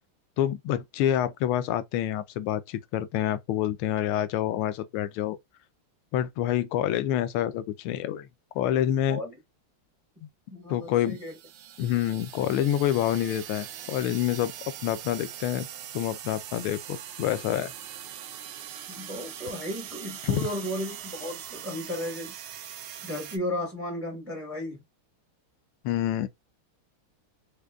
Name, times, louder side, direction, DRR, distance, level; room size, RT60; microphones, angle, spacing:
voice 1, 0.4-5.4 6.1-8.3 8.5-9.2 10.7-11.2 11.8-15.7 15.9-17.7 20.2-20.4 25.8-26.3, left 11 dB, 80° left, 1.4 m, -27 dB
voice 2, 10.5-11.3 18.9-22.3 23.0-24.8, left 1 dB, 15° right, 0.5 m, -34 dB
sound 1, 10.9-23.4, right 10 dB, 80° right, 1.5 m, -42 dB
5.0 x 2.1 x 2.3 m
omnidirectional pair, 2.3 m